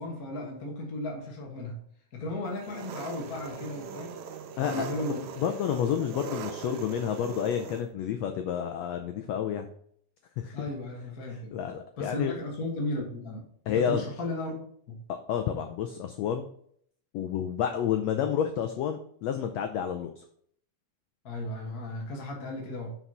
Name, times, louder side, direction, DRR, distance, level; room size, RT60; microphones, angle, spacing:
voice 1, 0.0-1.8 2.1-4.3 4.6-5.3 10.5-11.6 12.0-14.6 14.9-15.0 18.1-18.2 21.2-22.9, left 2 dB, 45° left, -1 dB, 1.2 m, -35 dB
Engine, 2.6-7.8, right 7 dB, 75° right, 1.9 m, -40 dB
voice 2, 5.4-9.7 10.4-10.5 11.5-12.3 13.7-14.0 15.3-16.5 17.1-20.2, left 9 dB, 90° left, 6 dB, 1.4 m, -30 dB
5.9 x 5.5 x 5.5 m, 0.64 s
omnidirectional pair, 3.8 m